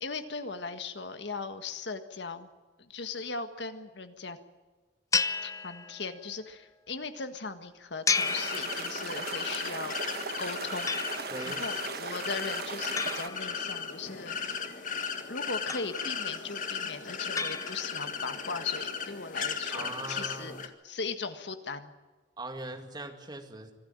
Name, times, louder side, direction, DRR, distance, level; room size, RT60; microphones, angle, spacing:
voice 1, 0.0-2.5 2.8-4.4 5.4-11.0 11.5-14.6 15.3-20.5 20.8-21.9, left 4 dB, 75° left, 9 dB, 1.7 m, -38 dB
sound 1, 5.1-6.3 8.1-9.3 10.9-11.6 13.0-14.1 15.7-16.4 17.4-18.2, left 5 dB, 20° left, 0.5 m, -33 dB
sound 2, 8.1-13.3, right 5 dB, 60° right, 1.2 m, -38 dB
sound 3, 8.2-20.7, left 6 dB, 45° left, 1.7 m, -36 dB
voice 2, 11.3-11.6 19.7-20.6 22.4-23.7, right 2 dB, 25° right, 5 dB, 2.1 m, -40 dB
24.5 x 13.0 x 9.0 m, 1.3 s
head